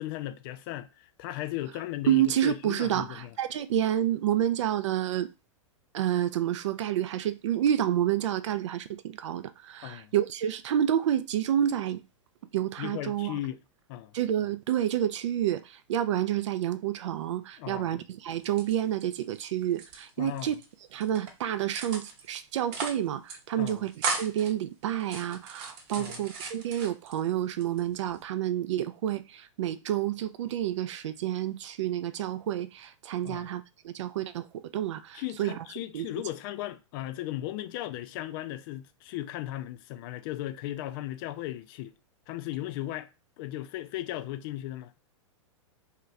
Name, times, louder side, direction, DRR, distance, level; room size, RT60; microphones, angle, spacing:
voice 1, 0.0-3.4 9.8-10.1 12.8-13.6 13.9-14.1 17.6-17.9 20.2-20.6 23.6-23.9 26.0-26.3 33.2-33.5 35.1-41.9 42.3-43.1 43.4-44.9, left 14 dB, 45° left, 0.4 m, -36 dB
voice 2, 2.1-3.0 3.4-5.3 5.9-12.0 12.5-13.4 14.1-15.6 15.9-20.6 20.9-23.9 24.2-35.5 35.9-36.1, right 11 dB, 65° right, 0.4 m, -29 dB
sound 1, 18.4-19.4 19.7-20.6 21.0-21.3 21.7-22.3 22.6-23.0 23.3-23.4 23.7-24.5 25.0-27.2 27.6-28.2, right 4 dB, 45° right, 0.8 m, -36 dB
2.7 x 2.4 x 3.2 m
hypercardioid pair, 105°, 17 cm